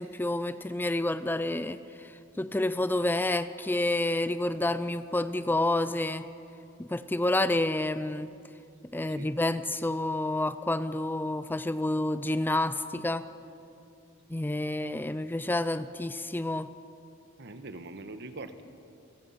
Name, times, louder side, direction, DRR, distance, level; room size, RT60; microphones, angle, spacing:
voice 1, 0.0-2.1 2.4-6.3 6.8-8.3 8.9-13.3 14.3-16.7, left 1 dB, 10° left, 13 dB, 0.4 m, -29 dB
voice 2, 8.9-9.3 17.4-18.6, right 2 dB, 55° right, 9 dB, 1.3 m, -43 dB
29.5 x 16.5 x 5.8 m, 2.6 s
head